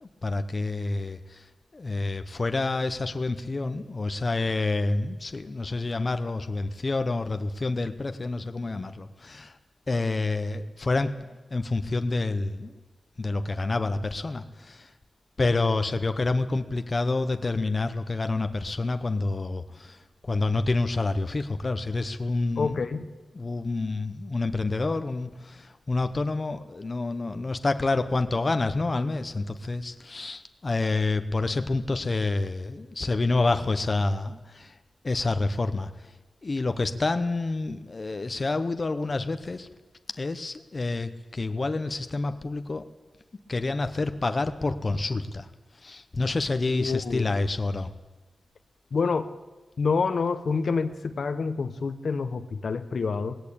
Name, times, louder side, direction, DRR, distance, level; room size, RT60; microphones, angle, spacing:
voice 1, 0.0-1.5 1.7-9.6 9.9-11.3 11.5-12.7 13.2-14.9 15.4-22.8 23.3-34.8 35.0-36.1 36.4-39.7 40.1-42.8 43.5-45.5 45.8-47.9, left 3 dB, 35° left, 9 dB, 0.9 m, -28 dB
voice 2, 22.6-23.1 46.7-47.3 48.9-49.3 49.8-53.4, left 4 dB, 60° left, 10 dB, 1.0 m, -27 dB
19.0 x 17.0 x 8.6 m, 1.2 s
wide cardioid pair, 135°, 0 cm